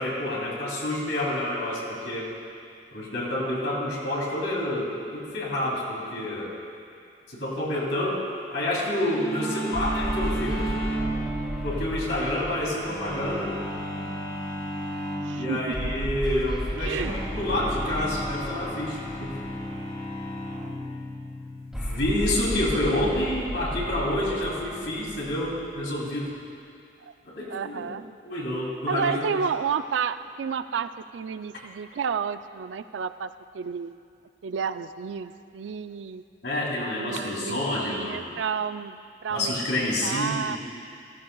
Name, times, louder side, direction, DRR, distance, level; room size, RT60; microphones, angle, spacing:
voice 1, 0.0-2.3 2.9-6.5 7.3-8.2 8.5-10.8 11.6-13.6 15.3-19.4 21.8-26.3 27.2-27.8 28.2-29.4 36.4-38.3 39.3-40.6, left 1 dB, 80° left, -4 dB, 3.0 m, -28 dB
sound 1, 9.0-23.5, right 1 dB, 15° left, 1.6 m, -35 dB
voice 2, 9.5-9.9 15.2-15.8 16.8-17.1 23.8-23.9 24.2-24.6 27.5-28.1 28.9-33.9 34.4-36.2 36.9-39.0 39.2-39.6 40.0-40.6, right 6 dB, 85° right, 12 dB, 0.4 m, -31 dB
sound 2, 9.7-14.3 15.7-20.1 21.7-26.3, equal, 5° right, 2.1 m, -34 dB
15.0 x 14.5 x 2.3 m, 2.5 s
head